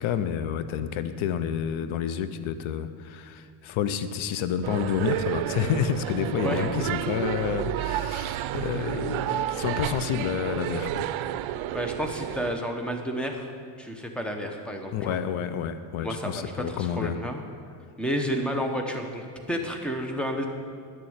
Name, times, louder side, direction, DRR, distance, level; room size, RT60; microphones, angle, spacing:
voice 1, 0.0-11.1 14.9-17.2, left 8 dB, 80° left, 12 dB, 0.8 m, -29 dB
sound 1, 4.6-12.6, right 12 dB, 80° right, 0.6 m, -31 dB
voice 2, 6.4-6.9 11.7-13.5 13.8-15.2 16.0-17.4 18.0-20.4, equal, ahead, 3 dB, 1.1 m, -31 dB
10.5 x 6.9 x 8.8 m, 2.2 s
cardioid pair, 140°, 47 cm